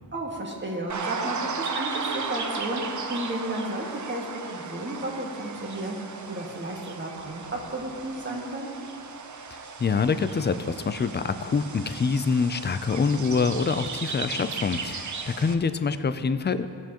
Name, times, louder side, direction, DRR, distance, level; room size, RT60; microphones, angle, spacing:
voice 1, 0.1-8.9, right 1 dB, 25° right, -2 dB, 1.6 m, -33 dB
sound 1, 0.9-15.5, right 5 dB, 45° right, 0.7 m, -36 dB
voice 2, 9.8-16.7, left 5 dB, 25° left, 11 dB, 0.4 m, -25 dB
16.5 x 7.0 x 3.0 m, 2.5 s
wide cardioid pair, 80°, 41 cm